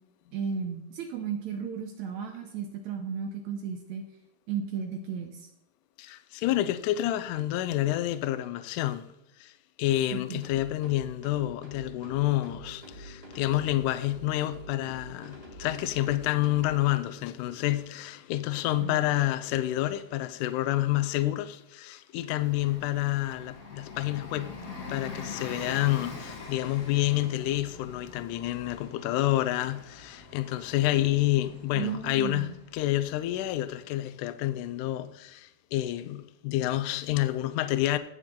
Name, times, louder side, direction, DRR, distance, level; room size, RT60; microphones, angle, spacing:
voice 1, 0.3-4.0 4.5-5.5 10.1-10.4 18.8-19.0 31.7-32.5, right 7 dB, 75° right, 1.7 m, -34 dB
voice 2, 6.0-9.1 9.4-24.5 24.9-38.0, left 15 dB, 85° left, 1.8 m, -29 dB
sound 1, 10.4-16.8, right 1 dB, 45° right, 0.8 m, -46 dB
Bus, 22.3-34.6, left 4 dB, 65° left, 0.8 m, -44 dB
16.5 x 6.6 x 3.7 m
omnidirectional pair, 4.2 m